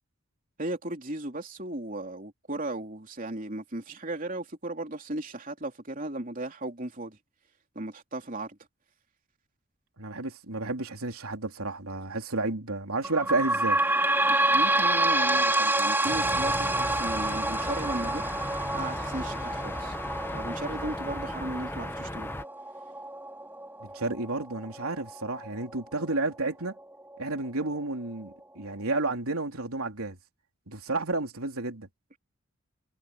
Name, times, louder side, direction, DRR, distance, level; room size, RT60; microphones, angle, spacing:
voice 1, 0.6-7.2 7.8-8.6 14.3-18.2 18.7-20.0 20.3-22.3, right 1 dB, 40° right, 3.4 m, -36 dB
voice 2, 10.0-13.8 23.8-26.7 27.2-30.2 30.7-31.9, right 2 dB, 85° right, 3.4 m, -31 dB
sound 1, 13.0-26.2 26.8-26.9 27.1-27.2 28.0-28.1, right 2 dB, 10° right, 3.5 m, -28 dB
sound 2, 16.0-22.4, left 1 dB, 10° left, 0.9 m, -36 dB
head